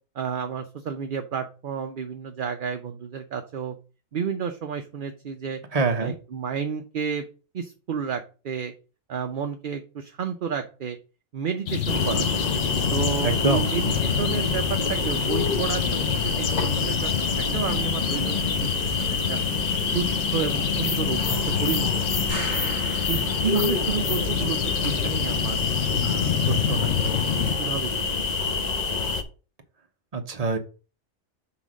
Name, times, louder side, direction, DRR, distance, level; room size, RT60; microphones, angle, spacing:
voice 1, 0.1-3.8 4.1-5.6 6.0-7.2 7.5-8.7 9.1-11.0 11.3-12.4 12.9-17.1 17.4-18.9 19.3-19.4 19.9-21.9 23.1-24.6 24.8-25.6 26.0-27.9, right 7 dB, 50° right, 6 dB, 0.7 m, -31 dB
voice 2, 5.7-6.1 13.2-13.7 30.1-30.6, right 3 dB, 30° right, 5 dB, 1.0 m, -24 dB
sound 1, 11.7-27.6, left 8 dB, 75° left, 1.2 m, -29 dB
sound 2, 11.9-29.2, left 4 dB, 35° left, 0.8 m, -26 dB
sound 3, 22.3-23.8, right 1 dB, 10° left, 2.0 m, -37 dB
5.7 x 3.9 x 6.1 m, 0.35 s
omnidirectional pair, 1.3 m